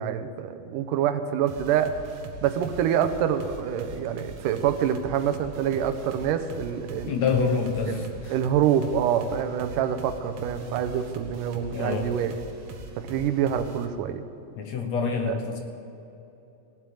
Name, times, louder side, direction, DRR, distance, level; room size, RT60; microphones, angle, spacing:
voice 1, 0.0-1.9 2.4-7.2 7.9-12.3 13.0-14.2 15.3-15.4, right 9 dB, 75° right, 9 dB, 2.2 m, -26 dB
sound 1, 1.5-13.8, right 3 dB, 60° right, 2.0 m, -42 dB
voice 2, 7.1-8.3 11.7-12.1 14.6-15.6, left 5 dB, 65° left, 4 dB, 1.9 m, -26 dB
16.0 x 8.0 x 9.1 m, 3.0 s
omnidirectional pair, 4.1 m